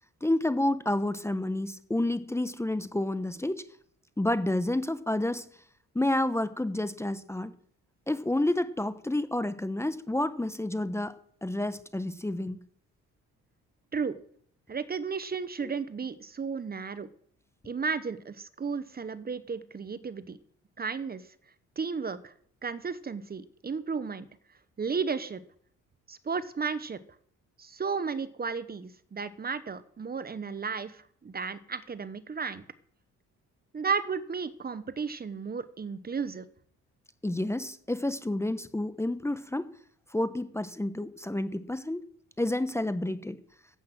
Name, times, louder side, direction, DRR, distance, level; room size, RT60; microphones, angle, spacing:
voice 1, 0.2-3.7 4.2-5.5 5.9-7.5 8.1-11.1 11.4-12.6 15.6-15.7 37.2-39.7 40.1-42.0 42.4-43.4, left 1 dB, 10° left, 12 dB, 0.9 m, -29 dB
voice 2, 14.7-17.1 17.6-20.4 20.8-21.2 21.8-22.3 22.6-24.3 24.8-25.4 26.1-27.0 27.6-32.6 33.7-36.5, right 5 dB, 30° right, 14 dB, 1.0 m, -33 dB
14.0 x 8.6 x 6.1 m, 0.62 s
cardioid pair, 90°, 30 cm